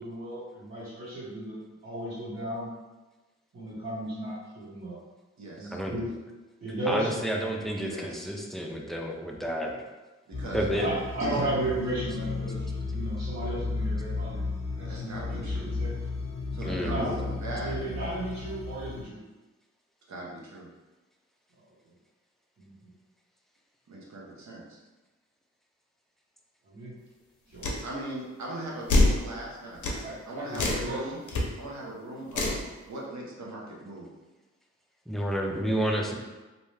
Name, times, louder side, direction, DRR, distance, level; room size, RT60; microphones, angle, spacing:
voice 1, 0.0-2.7 3.5-5.0 5.6-6.1 6.6-7.5 10.4-14.4 14.7-15.9 16.5-17.2 17.6-19.2 21.8-21.9 22.6-22.9 26.6-26.9 27.5-27.8 30.0-31.0, right 1 dB, 45° right, -13 dB, 1.1 m, -35 dB
voice 2, 5.4-5.8 7.8-8.4 10.3-11.4 14.8-15.7 16.5-17.7 20.1-20.7 23.9-24.8 27.8-31.2 31.6-34.1, right 2 dB, 70° right, -3 dB, 0.8 m, -39 dB
voice 3, 6.9-9.7 10.5-10.9 16.6-17.2 35.1-36.1, equal, ahead, 0 dB, 0.4 m, -30 dB
sound 1, 10.3-19.0, left 3 dB, 20° left, 1.1 m, -34 dB
sound 2, 27.6-27.8 28.9-29.2 29.8-30.0 30.5-30.9 31.3-31.4 32.3-32.6, left 2 dB, 90° left, 0.5 m, -23 dB
2.7 x 2.2 x 3.1 m, 1.2 s
wide cardioid pair, 70°, 29 cm